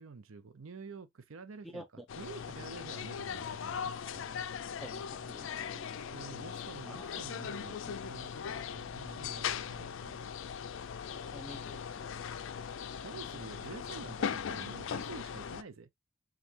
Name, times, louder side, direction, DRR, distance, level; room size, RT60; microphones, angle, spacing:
voice 1, 0.0-4.4 6.1-10.2 13.0-15.9, right 4 dB, 70° right, 0.6 m, -49 dB
voice 2, 1.6-2.0 4.8-6.5 6.9-7.2 11.0-12.3, equal, ahead, 0.7 m, -51 dB
sound 1, 2.1-15.6, left 7 dB, 60° left, 0.4 m, -39 dB
5.4 x 2.3 x 2.9 m
head